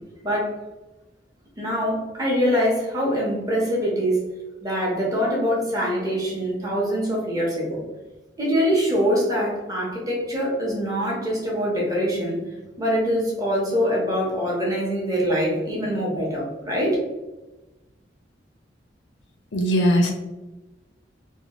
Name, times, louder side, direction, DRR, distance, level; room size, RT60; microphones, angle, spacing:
voice 1, 0.2-0.5 1.6-4.2 4.6-7.8 8.4-12.4 12.8-17.0, equal, 20° right, -4 dB, 0.8 m, -24 dB
voice 2, 19.5-20.1, equal, 90° left, 1 dB, 0.6 m, -19 dB
2.8 x 2.2 x 2.9 m, 1.1 s
head